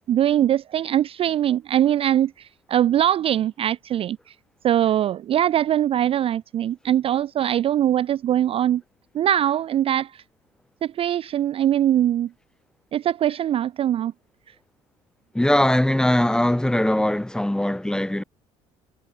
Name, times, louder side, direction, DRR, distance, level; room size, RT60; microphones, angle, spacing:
voice 1, 0.1-4.2 4.6-8.8 9.1-10.1 10.8-12.3 12.9-14.1, right 11 dB, 40° right, 0.3 m, -22 dB
voice 2, 15.3-18.2, left 1 dB, 5° left, 1.6 m, -21 dB
supercardioid pair, 75°, 14 cm